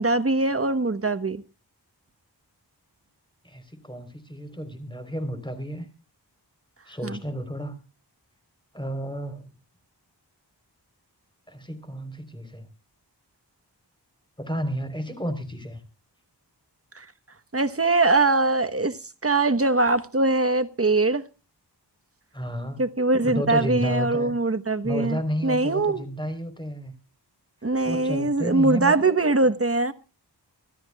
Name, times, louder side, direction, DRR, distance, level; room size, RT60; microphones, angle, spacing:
voice 1, 0.0-1.4 7.0-7.2 16.9-17.1 17.5-21.2 22.8-26.0 27.6-29.9, right 2 dB, 35° right, 1.1 m, -22 dB
voice 2, 3.4-5.9 6.9-7.8 8.7-9.5 11.5-12.7 14.4-15.8 22.3-22.8 23.2-24.3 24.8-26.9 27.8-29.2, equal, 10° left, 3.8 m, -31 dB
25.5 x 13.0 x 2.3 m
wide cardioid pair, 55°, 42 cm